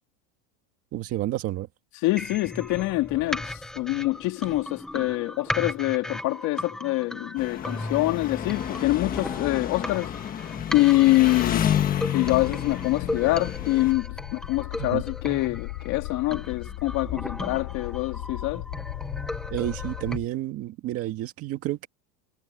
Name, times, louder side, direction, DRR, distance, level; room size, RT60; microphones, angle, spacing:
voice 1, 0.9-1.7 14.8-15.0 19.5-21.9, right 15 dB, 30° right, 1.9 m, -30 dB
voice 2, 2.0-10.1 10.7-11.7 12.1-18.6, left 19 dB, 40° left, 2.9 m, -25 dB
sound 1, 2.2-20.2, left 1 dB, ahead, 0.3 m, -37 dB
Engine, 7.4-13.9, left 10 dB, 20° left, 1.3 m, -30 dB
sound 2, 12.3-20.3, left 25 dB, 65° left, 4.2 m, -37 dB
supercardioid pair, 170°, 44 cm